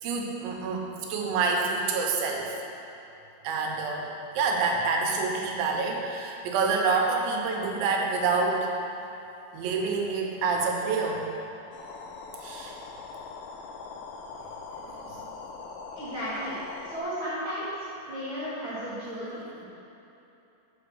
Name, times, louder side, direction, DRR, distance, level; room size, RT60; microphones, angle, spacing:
voice 1, 0.0-2.5 3.4-4.1 4.4-8.7 9.5-11.3 12.4-12.8 14.7-15.2, right 4 dB, 85° right, 1 dB, 3.2 m, -27 dB
sound 1, 11.7-17.0, left 4 dB, 90° left, 3.0 m, -42 dB
voice 2, 15.9-16.5 16.8-17.7 18.1-19.7, equal, 65° right, -12 dB, 1.2 m, -34 dB
7.2 x 6.0 x 6.2 m, 3.0 s
omnidirectional pair, 5.1 m